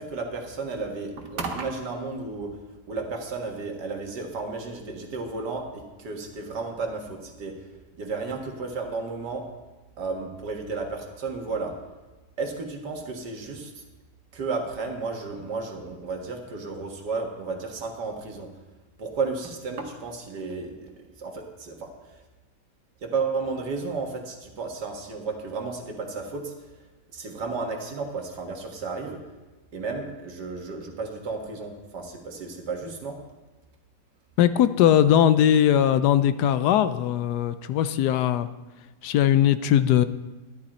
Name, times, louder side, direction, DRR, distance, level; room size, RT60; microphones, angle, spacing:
voice 1, 0.0-2.6 2.9-7.7 8.0-9.5 10.0-11.7 12.4-13.8 14.3-18.5 19.0-20.9 21.2-22.2 23.0-26.5 27.1-29.2 29.7-33.2, right 4 dB, 70° right, 2 dB, 2.2 m, -33 dB
voice 2, 34.4-38.5 39.0-40.0, left 10 dB, 75° left, 13 dB, 1.1 m, -20 dB
12.5 x 11.5 x 4.3 m, 1.2 s
omnidirectional pair, 1.8 m